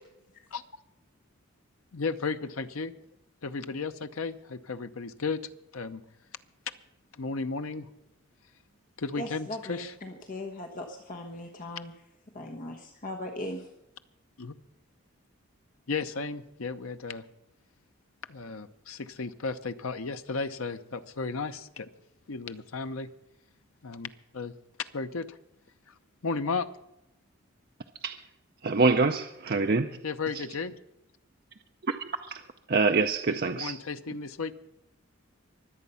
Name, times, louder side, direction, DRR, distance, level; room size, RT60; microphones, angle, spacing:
voice 1, 1.9-2.9 3.4-5.4 5.7-6.0 7.2-7.9 9.0-9.9 14.4-14.5 15.9-17.2 18.3-21.9 22.3-23.1 23.8-25.4 25.9-26.0 26.2-26.7 30.0-30.7 33.3-34.5, left 4 dB, 75° left, 10 dB, 0.8 m, -34 dB
voice 2, 9.1-11.9 12.3-13.7, left 1 dB, 40° left, 2 dB, 1.2 m, -39 dB
voice 3, 28.6-30.0 30.3-30.4 31.8-33.8, right 4 dB, 45° right, 6 dB, 0.6 m, -26 dB
23.5 x 8.4 x 5.6 m, 0.87 s
head